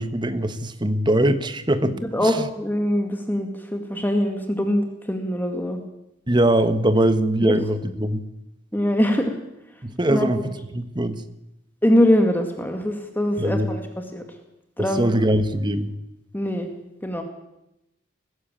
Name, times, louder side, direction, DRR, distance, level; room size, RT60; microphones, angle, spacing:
voice 1, 0.0-2.5 6.3-8.2 9.8-11.2 13.4-13.7 14.8-15.9, right 1 dB, 25° right, 11 dB, 1.3 m, -22 dB
voice 2, 2.0-5.8 7.4-7.6 8.7-9.4 10.1-10.5 11.8-13.8 14.1-14.2 14.8-15.1 16.3-16.7 17.0-17.2, left 1 dB, 10° left, 5 dB, 2.1 m, -22 dB
21.0 x 15.0 x 8.8 m, 0.87 s
head